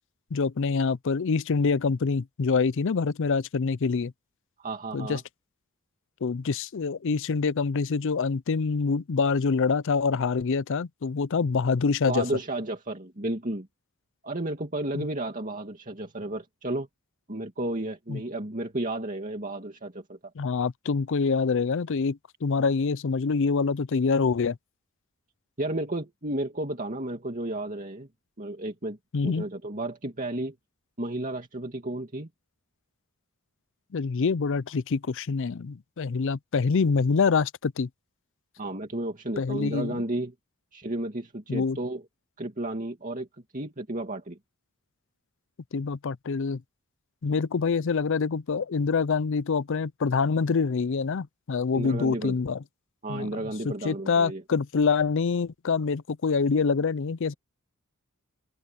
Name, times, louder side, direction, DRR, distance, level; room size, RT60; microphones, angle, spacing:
voice 1, 0.3-4.1 4.9-5.2 6.2-12.2 14.9-15.1 18.1-18.2 20.4-24.6 29.1-29.4 33.9-37.9 39.4-40.0 41.5-41.8 45.7-46.6 47.2-52.6 53.1-57.3, left 5 dB, 60° left, 0.5 m, -26 dB
voice 2, 4.6-5.2 12.1-13.7 14.2-16.9 17.3-20.2 25.6-28.1 28.4-29.0 29.2-30.5 31.0-32.3 38.6-40.3 40.7-42.0 42.4-43.3 43.5-44.4 51.7-52.4 53.0-54.4, right 1 dB, 35° right, 2.4 m, -32 dB
open air
head